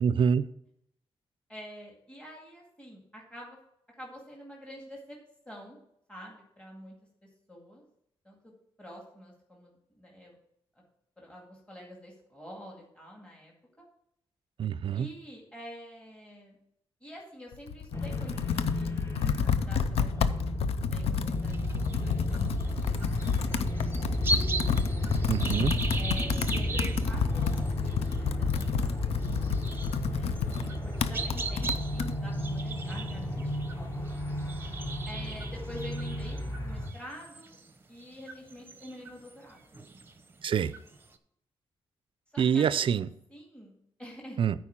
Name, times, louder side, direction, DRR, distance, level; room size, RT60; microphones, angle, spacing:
voice 1, 0.0-0.4 14.6-15.1 25.3-25.8 40.4-40.7 42.4-43.1 44.4-44.5, right 7 dB, 60° right, 0.4 m, -25 dB
voice 2, 1.5-3.6 4.0-5.2 5.5-5.8 6.1-7.0 7.2-7.8 8.2-8.5 8.8-10.4 11.2-13.9 14.9-16.6 17.0-24.4 25.9-29.1 30.1-33.6 35.1-37.6 37.9-39.6 42.3-44.4, equal, 10° left, 2.1 m, -47 dB
Computer keyboard, 17.5-32.1, left 8 dB, 90° left, 0.5 m, -31 dB
sound 1, 17.9-36.9, left 1 dB, 25° left, 1.3 m, -33 dB
sound 2, 21.4-41.2, right 2 dB, 20° right, 0.8 m, -39 dB
9.3 x 4.6 x 7.3 m
cardioid pair, 95°, 10 cm